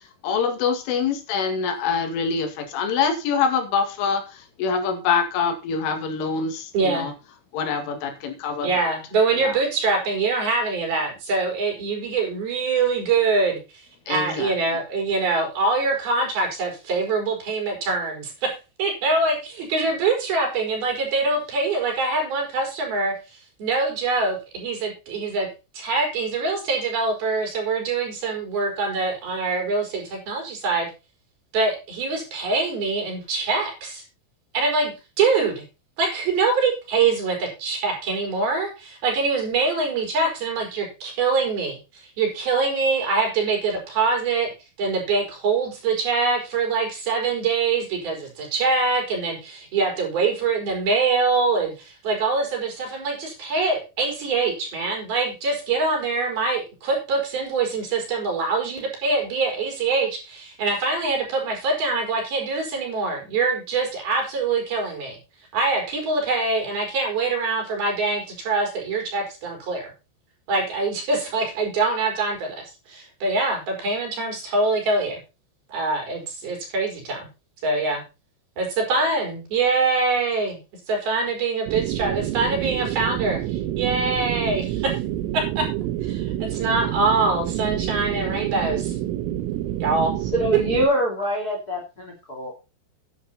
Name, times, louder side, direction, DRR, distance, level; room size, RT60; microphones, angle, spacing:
voice 1, 0.2-4.2 4.6-7.1 7.5-8.9 9.4-9.5 14.1-14.5, left 5 dB, 75° left, 6 dB, 4.5 m, -25 dB
voice 2, 6.7-7.1 8.6-13.6 14.1-25.5 25.7-30.9 31.5-34.0 34.5-35.6 36.0-44.5 44.8-65.2 65.5-69.9 70.5-75.2 75.7-77.3 77.6-78.0 78.6-80.6 80.9-85.0 85.3-85.7 86.0-88.9 89.8-90.2, right 3 dB, 50° right, 2 dB, 6.0 m, -24 dB
sound 1, 81.7-90.8, right 13 dB, 85° right, 3.7 m, -28 dB
voice 3, 90.2-92.5, equal, 25° left, 1 dB, 2.2 m, -24 dB
10.5 x 10.5 x 4.2 m, 0.29 s
omnidirectional pair, 5.8 m